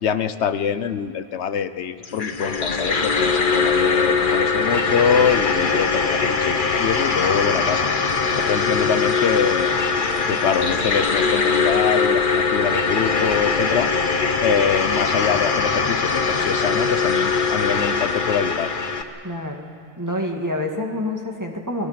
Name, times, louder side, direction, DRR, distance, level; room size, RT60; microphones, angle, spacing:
voice 1, 0.0-7.9 8.5-9.7 10.3-13.9 14.4-18.7, left 7 dB, 85° left, 12 dB, 1.1 m, -24 dB
sound 1, 2.0-19.0, left 4 dB, 50° left, 1.2 m, -21 dB
voice 2, 19.2-19.7 20.0-21.9, left 1 dB, 15° right, 1 dB, 2.1 m, -27 dB
29.0 x 22.0 x 5.9 m, 2.5 s
omnidirectional pair, 1.1 m